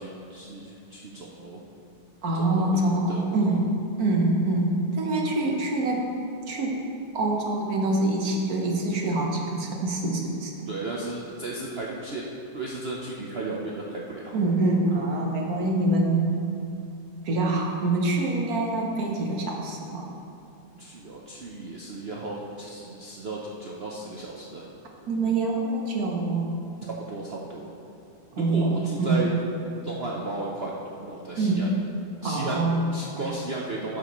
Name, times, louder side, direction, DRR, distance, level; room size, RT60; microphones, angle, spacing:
voice 1, 0.0-1.6 2.3-3.6 10.7-14.4 20.8-24.7 26.8-27.7 28.3-29.3 29.8-31.7 32.2-32.6 32.9-34.0, right 2 dB, 80° right, -3 dB, 0.5 m, -35 dB
voice 2, 2.2-3.6 4.0-6.0 6.5-6.8 7.1-10.5 14.3-16.2 17.2-20.1 25.1-26.5 28.4-29.2 31.4-31.8 32.2-32.9, right 2 dB, 55° right, 0 dB, 1.4 m, -25 dB
12.5 x 7.3 x 3.1 m, 2.8 s
omnidirectional pair, 2.1 m